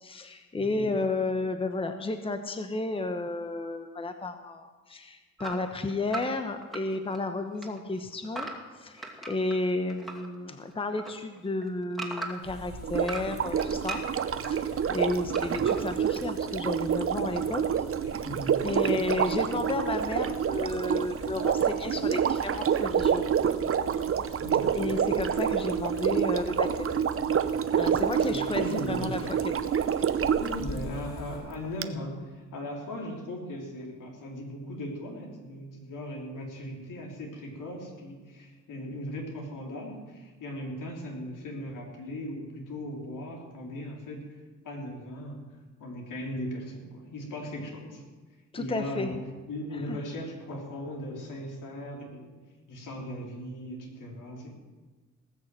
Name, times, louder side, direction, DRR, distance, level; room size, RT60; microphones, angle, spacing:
voice 1, 0.0-8.5 8.7-14.0 14.4-17.8 18.6-23.3 24.8-26.9 27.8-29.5 48.5-49.2 49.9-50.0, left 2 dB, 15° left, 7 dB, 1.0 m, -32 dB
voice 2, 0.5-0.9 18.0-18.6 18.8-19.0 24.4-24.8 28.3-29.1 30.4-44.4 44.6-45.4 45.8-48.0 48.6-49.2 49.5-52.3 52.7-54.5, left 1 dB, 70° left, -1 dB, 3.7 m, -38 dB
sound 1, 5.4-7.3 7.5-10.3 10.6-12.6 13.0-14.5 15.3-15.8, right 2 dB, ahead, 2.4 m, -39 dB
sound 2, 12.4-31.4, left 1 dB, 55° left, 4.4 m, -45 dB
Sink (filling or washing), 12.8-30.6 31.8-31.9, right 8 dB, 45° right, 0.7 m, -28 dB
18.5 x 6.4 x 7.7 m, 1.3 s
cardioid pair, 90°, 32 cm